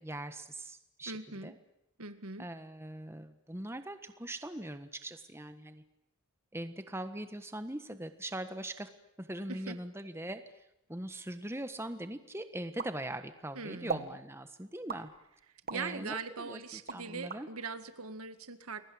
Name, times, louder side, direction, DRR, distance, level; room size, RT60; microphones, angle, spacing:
voice 1, 0.0-1.6 2.4-5.8 6.5-8.9 9.2-10.4 10.9-15.1 15.7-17.5, right 1 dB, 10° right, 9 dB, 1.4 m, -41 dB
voice 2, 1.1-1.5 2.0-2.5 9.5-9.8 13.5-14.1 15.7-18.8, right 4 dB, 85° right, 10 dB, 2.0 m, -41 dB
sound 1, 12.8-13.5 13.9-14.2 14.9-15.9 16.4-17.4, right 4 dB, 45° right, 1.8 m, -39 dB
30.0 x 22.5 x 8.8 m, 0.81 s
head